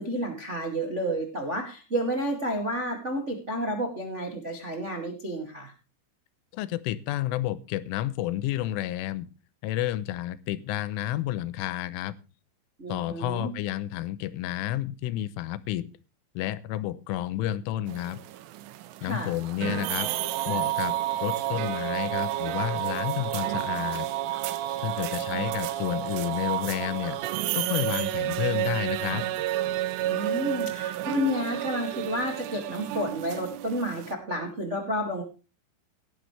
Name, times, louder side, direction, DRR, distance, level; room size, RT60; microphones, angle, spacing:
voice 1, 0.0-5.7 12.8-13.5 19.0-19.3 30.1-35.2, equal, 60° right, 1 dB, 0.7 m, -30 dB
voice 2, 6.5-9.3 9.6-12.1 12.9-15.9 16.4-18.2 19.0-20.1 20.5-24.1 24.8-29.3, left 13 dB, 90° left, 17 dB, 3.3 m, -31 dB
sound 1, 17.9-34.1, right 13 dB, 90° right, 3.4 m, -30 dB
17.5 x 11.0 x 3.3 m, 0.32 s
omnidirectional pair, 5.5 m